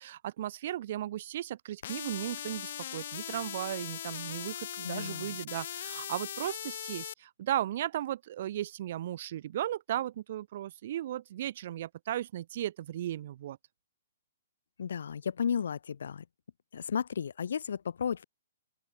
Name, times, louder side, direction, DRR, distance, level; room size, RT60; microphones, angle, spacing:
voice 1, 0.0-13.6, right 12 dB, 50° right, 0.8 m, -36 dB
sound 1, 1.8-7.1, left 10 dB, 55° left, 1.6 m, -40 dB
voice 2, 4.8-5.4 14.8-16.2 16.7-18.2, left 7 dB, 75° left, 3.1 m, -33 dB
open air
hypercardioid pair, 150°, 0 cm